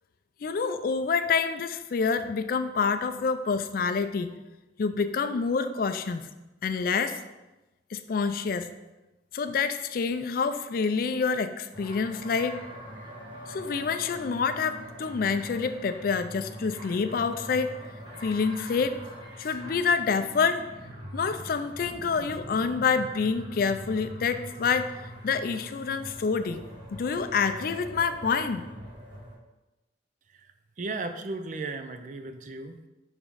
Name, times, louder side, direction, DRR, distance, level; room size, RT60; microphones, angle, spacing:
voice 1, 0.4-4.3 4.8-6.3 6.6-7.2 7.9-8.7 9.3-12.6 13.5-17.8 18.2-19.0 19.4-20.7 21.1-26.7 26.9-28.7, left 5 dB, 55° left, 10 dB, 0.4 m, -27 dB
sound 1, 11.7-29.3, equal, 25° right, 1.5 m, -43 dB
voice 2, 30.8-32.9, right 3 dB, 45° right, 8 dB, 0.5 m, -36 dB
5.0 x 3.6 x 5.5 m, 1.0 s
head